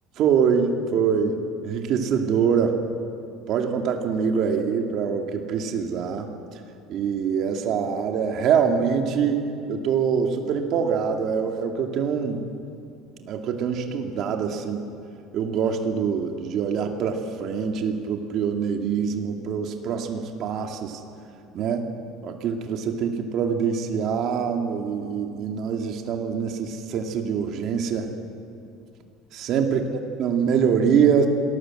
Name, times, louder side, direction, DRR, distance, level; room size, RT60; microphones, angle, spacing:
voice 1, 0.2-2.8 3.5-6.3 6.9-12.4 13.2-15.0 15.3-21.0 21.5-21.9 22.2-28.1 29.3-29.9 30.2-31.3, right 7 dB, 45° right, 4 dB, 2.3 m, -24 dB
26.0 x 19.5 x 7.8 m, 2.5 s
cardioid pair, 165°, 0 cm